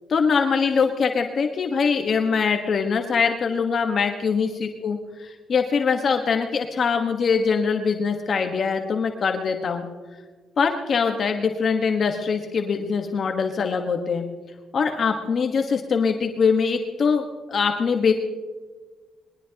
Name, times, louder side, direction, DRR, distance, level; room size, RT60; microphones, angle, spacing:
voice 1, 0.1-9.9 10.6-14.2 14.7-18.1, left 5 dB, 50° left, 4 dB, 1.3 m, -23 dB
21.5 x 20.0 x 2.9 m, 1.4 s
cardioid pair, 90°, 0 cm